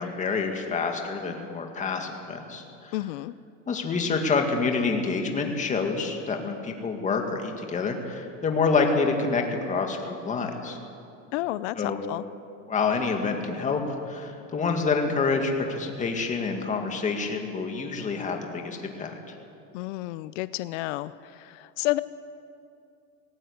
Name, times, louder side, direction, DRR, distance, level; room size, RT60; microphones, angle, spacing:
voice 1, 0.0-2.9 3.7-10.8 11.8-12.0 12.7-13.8 14.1-19.2, left 4 dB, 20° left, 3 dB, 2.1 m, -27 dB
voice 2, 2.9-3.3 11.3-12.3 19.7-22.0, left 17 dB, 85° left, 15 dB, 0.6 m, -31 dB
18.5 x 17.5 x 8.1 m, 2.5 s
cardioid pair, 155°, 35 cm